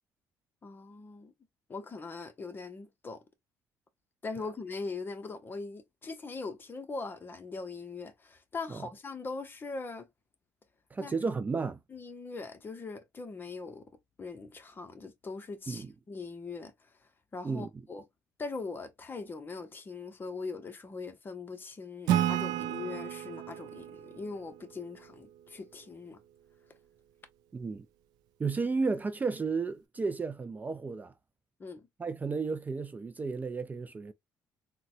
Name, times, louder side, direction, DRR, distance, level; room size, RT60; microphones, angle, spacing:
voice 1, 0.6-1.3 1.7-3.2 4.2-10.1 11.0-11.3 11.9-13.9 14.2-18.0 18.4-26.2 31.6-31.9, left 4 dB, 30° left, 0.9 m, -41 dB
voice 2, 10.9-11.8 15.7-15.9 17.4-17.7 27.5-27.9 28.4-31.1 32.0-34.1, right 4 dB, 25° right, 0.4 m, -33 dB
Acoustic guitar / Strum, 22.1-25.5, right 11 dB, 85° right, 0.4 m, -32 dB
3.9 x 2.2 x 2.5 m
cardioid pair, 90°, 7 cm